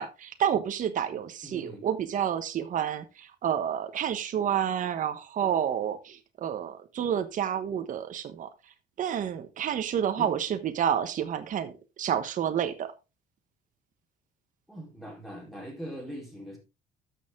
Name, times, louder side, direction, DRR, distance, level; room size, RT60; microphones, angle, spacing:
voice 1, 0.0-8.5 9.0-11.7 12.0-12.9, right 9 dB, 50° right, 1.2 m, -29 dB
voice 2, 1.4-1.9 10.2-10.3 14.7-16.6, equal, ahead, 4.3 m, -41 dB
12.5 x 6.7 x 3.7 m
cardioid pair, 110°, 17 cm